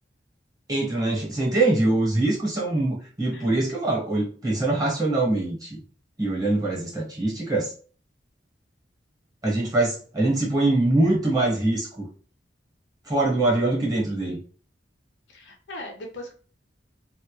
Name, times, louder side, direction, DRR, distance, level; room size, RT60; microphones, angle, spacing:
voice 1, 0.7-5.8 6.2-7.7 9.4-12.1 13.0-14.4, right 2 dB, 20° right, -3 dB, 0.9 m, -23 dB
voice 2, 15.3-16.3, left 1 dB, 75° left, 2 dB, 0.6 m, -39 dB
2.1 x 2.0 x 2.9 m, 0.41 s
head